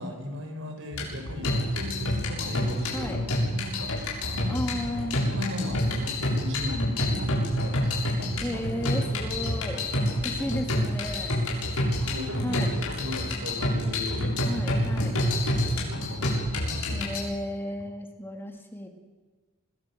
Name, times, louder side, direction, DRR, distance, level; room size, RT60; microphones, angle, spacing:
voice 1, 0.0-3.1 3.4-4.6 5.3-7.8 8.2-8.6 9.9-10.5 11.3-14.9 15.7-17.1, left 1 dB, 60° right, 4 dB, 6.0 m, -37 dB
sound 1, 0.9-17.2, left 1 dB, 80° left, 7.5 m, -28 dB
voice 2, 4.5-5.3 8.4-11.4 12.4-12.7 14.4-15.2 16.9-18.9, equal, 10° left, 4 dB, 2.4 m, -34 dB
27.0 x 21.0 x 7.7 m, 1.3 s
head